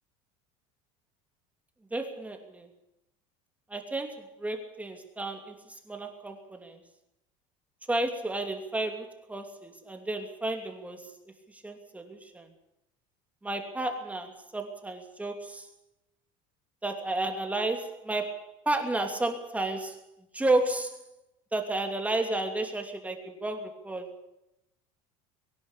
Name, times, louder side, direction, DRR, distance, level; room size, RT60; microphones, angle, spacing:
voice 1, 1.9-2.7 3.7-6.8 7.9-11.1 11.5-12.5 13.4-15.7 16.8-20.0 20.3-21.0 21.5-24.2, right 2 dB, 10° right, 4 dB, 2.8 m, -32 dB
24.5 x 11.0 x 9.9 m, 0.86 s
cardioid pair, 140°, 17 cm